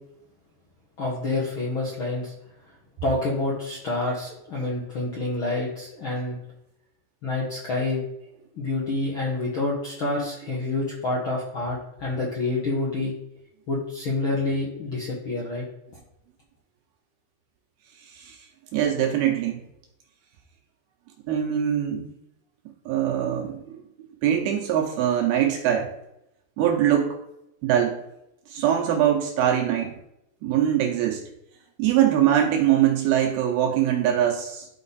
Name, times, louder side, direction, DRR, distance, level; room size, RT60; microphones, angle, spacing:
voice 1, 1.0-2.3 3.0-6.4 7.2-8.0 8.5-13.1 13.7-15.6, left 2 dB, 90° left, -5 dB, 1.1 m, -27 dB
voice 2, 18.1-18.4 18.7-19.6 21.3-22.1 22.9-25.9 26.6-27.2 27.6-28.0 28.5-30.0 30.4-31.2 31.8-34.7, right 10 dB, 75° right, 1 dB, 2.5 m, -23 dB
12.0 x 4.2 x 4.1 m, 0.83 s
omnidirectional pair, 4.9 m